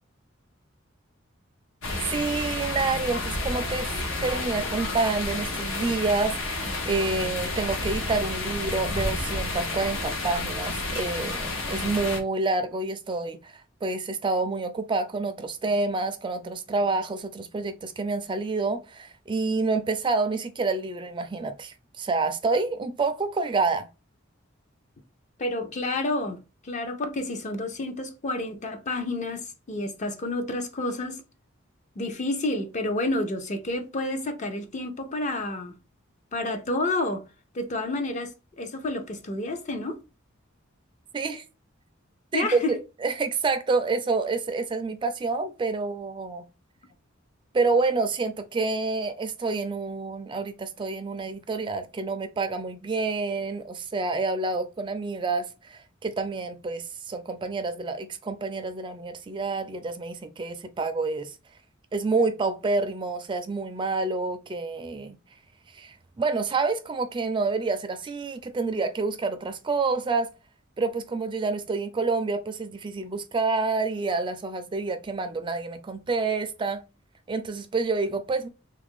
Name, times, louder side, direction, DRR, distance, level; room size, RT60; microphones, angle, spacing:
sound 1, 1.8-12.2, left 2 dB, 80° left, 0.8 m, -30 dB
voice 1, 2.1-3.9 4.2-23.9 41.1-41.4 42.3-46.4 47.5-61.3 61.9-65.2 65.7-70.3 70.8-76.8 77.3-78.5, right 3 dB, 25° right, 0.4 m, -28 dB
voice 2, 25.4-26.4 26.6-31.2 32.0-35.8 36.3-37.2 37.5-40.0 42.3-42.7, left 2 dB, 35° left, 0.5 m, -29 dB
3.1 x 2.4 x 3.5 m
head